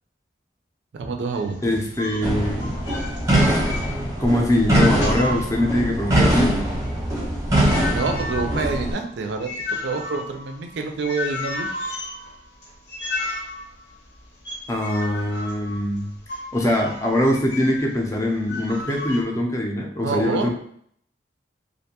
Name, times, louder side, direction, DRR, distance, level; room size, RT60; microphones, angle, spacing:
voice 1, 0.9-1.8 7.8-9.5 9.8-11.7 20.0-20.5, right 4 dB, 80° right, 4 dB, 0.4 m, -27 dB
sound 1, 1.3-4.3 4.6-6.1 6.4-17.9 18.5-19.2, left 2 dB, 80° left, 0.8 m, -33 dB
voice 2, 1.6-2.8 4.0-6.7 14.7-16.1 16.5-20.5, left 1 dB, 15° left, 0 dB, 0.4 m, -22 dB
sound 2, 2.2-8.9, right 1 dB, 20° right, 0.6 m, -22 dB
2.5 x 2.2 x 2.8 m, 0.64 s
head